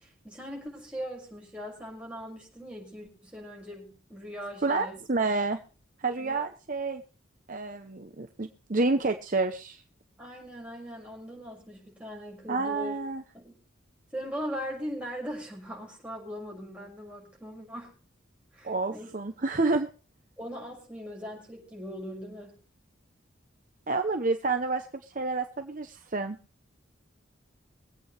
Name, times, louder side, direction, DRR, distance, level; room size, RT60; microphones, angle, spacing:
voice 1, 0.0-4.9 6.2-6.4 10.2-13.0 13.3-13.6 14.1-17.9 18.5-19.1 20.4-22.6, equal, 5° right, -3 dB, 6.3 m, -40 dB
voice 2, 4.6-5.6 6.0-7.0 7.5-9.8 12.5-13.2 18.6-19.9 23.9-24.9 25.1-26.4, right 3 dB, 40° right, 6 dB, 0.8 m, -29 dB
23.5 x 8.5 x 3.3 m, 0.37 s
head